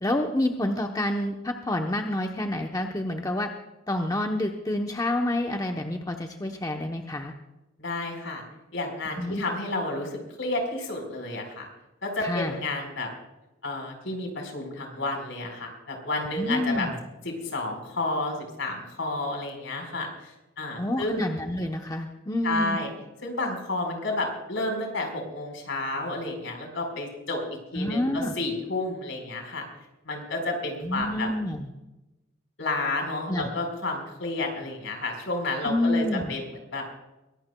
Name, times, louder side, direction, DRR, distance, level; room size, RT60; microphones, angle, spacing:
voice 1, 0.0-3.5 3.9-7.3 9.2-9.4 12.2-12.6 16.4-17.0 20.8-22.8 27.7-28.3 30.8-31.7 33.3-33.5 35.6-36.3, left 1 dB, 20° left, 3 dB, 0.8 m, -28 dB
voice 2, 7.8-8.4 8.7-11.7 12.0-13.1 13.6-16.9 17.5-21.2 22.4-22.9 23.2-27.4 27.7-29.6 30.0-31.3 32.6-36.4 36.7-36.8, left 2 dB, 65° left, 2 dB, 4.5 m, -31 dB
23.0 x 17.5 x 2.3 m, 1.0 s
head